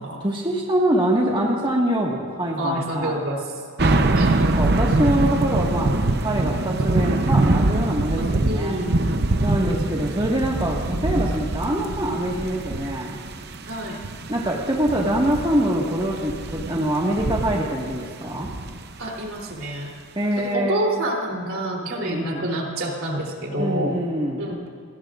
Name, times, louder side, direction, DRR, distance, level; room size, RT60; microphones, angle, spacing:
voice 1, 0.2-3.2 3.9-8.8 9.4-13.2 14.3-18.5 20.1-20.8 21.9-22.5 23.6-24.4, right 1 dB, 20° right, -3 dB, 1.7 m, -24 dB
voice 2, 2.6-4.5 8.2-9.3 13.6-14.0 16.5-16.8 19.0-19.9 20.4-24.0 24.4-24.7, right 1 dB, 70° right, -1 dB, 3.3 m, -28 dB
sound 1, 3.8-19.0 19.5-19.6, right 2 dB, 50° right, 0.8 m, -24 dB
29.5 x 19.0 x 2.5 m, 2.3 s
head